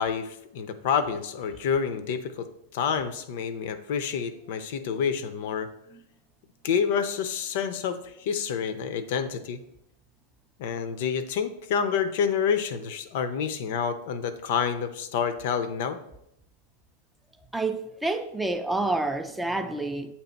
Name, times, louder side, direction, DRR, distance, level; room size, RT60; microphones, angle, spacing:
voice 1, 0.0-2.5 2.7-5.7 6.6-9.6 10.6-16.0, left 7 dB, 50° left, 0.4 m, -28 dB
voice 2, 17.5-20.1, right 2 dB, 5° right, 0.4 m, -28 dB
8.6 x 2.9 x 4.3 m
figure-of-eight pair, 90°, 0 cm